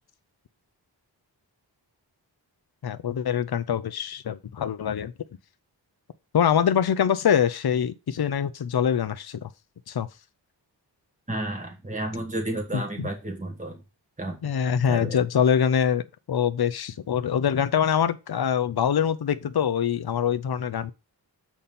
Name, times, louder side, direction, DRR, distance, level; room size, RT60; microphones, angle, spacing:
voice 1, 2.8-5.1 6.3-9.5 9.9-10.1 12.7-13.1 14.4-20.9, left 8 dB, 60° left, 0.7 m, -24 dB
voice 2, 11.3-13.8 14.2-14.4 14.9-15.2, right 1 dB, 15° right, 1.5 m, -31 dB
7.3 x 4.3 x 5.3 m
wide cardioid pair, 75°, 43 cm